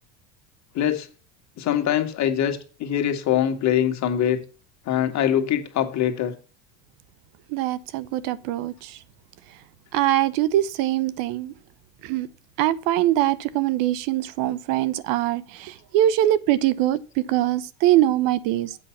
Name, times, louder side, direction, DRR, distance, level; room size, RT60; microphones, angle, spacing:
voice 1, 0.8-1.1 1.6-4.4 4.9-6.3, left 10 dB, 45° left, 1.8 m, -23 dB
voice 2, 7.5-9.0 9.9-11.5 12.0-12.3 12.6-18.8, right 13 dB, 65° right, 0.8 m, -23 dB
8.0 x 5.6 x 7.2 m
supercardioid pair, 100°, 37 cm